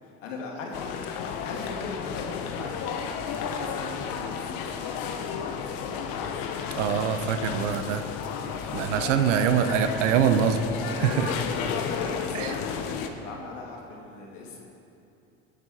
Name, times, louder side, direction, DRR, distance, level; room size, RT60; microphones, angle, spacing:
voice 1, 0.0-3.0 3.3-6.1 8.7-9.1 11.0-14.6, left 4 dB, 85° left, -1 dB, 2.7 m, -39 dB
sound 1, 0.7-13.1, left 7 dB, 65° left, 1.3 m, -33 dB
voice 2, 6.8-8.1 8.7-10.6 10.9-11.3 12.3-12.5, right 8 dB, 80° right, 9 dB, 1.0 m, -24 dB
18.0 x 8.7 x 5.7 m, 2.8 s
hypercardioid pair, 80°, 37 cm